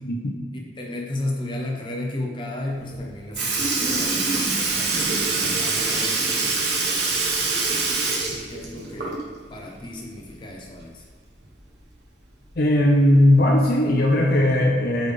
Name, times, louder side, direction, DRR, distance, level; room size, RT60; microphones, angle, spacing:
voice 1, 0.0-0.4 12.6-15.1, left 1 dB, 55° left, 0 dB, 0.6 m, -18 dB
voice 2, 0.7-5.1 5.4-9.2 9.5-11.0, left 1 dB, 25° left, -1 dB, 0.8 m, -34 dB
Sink (filling or washing) / Liquid, 2.9-3.0 3.3-9.4 9.8-9.9 11.4-11.5 12.5-12.6 13.4-13.6 14.4-14.5, right 3 dB, 65° right, 1.1 m, -24 dB
7.8 x 3.4 x 3.5 m, 1.5 s
head